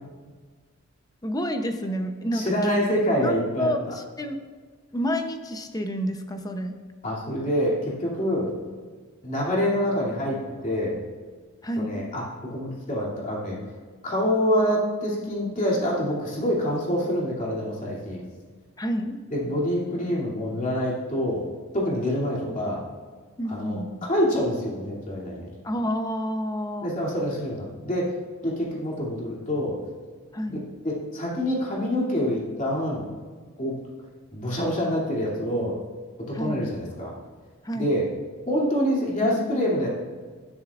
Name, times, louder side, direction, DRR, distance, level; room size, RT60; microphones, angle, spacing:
voice 1, 1.2-2.7 3.2-4.4 4.9-6.7 11.6-12.0 18.8-19.2 23.4-23.9 25.6-26.9 30.3-30.6 36.3-36.7 37.6-37.9, equal, 15° left, 6 dB, 0.7 m, -29 dB
voice 2, 2.3-3.9 7.0-8.5 9.2-11.0 11.7-13.6 14.0-18.2 19.3-21.5 21.7-22.8 23.5-23.8 24.1-25.5 26.8-28.1 28.4-29.8 30.5-33.1 33.6-33.8 34.3-35.8 36.3-37.1 37.7-38.0 38.5-39.9, equal, 35° left, -4 dB, 2.7 m, -26 dB
12.5 x 10.0 x 2.5 m, 1.5 s
head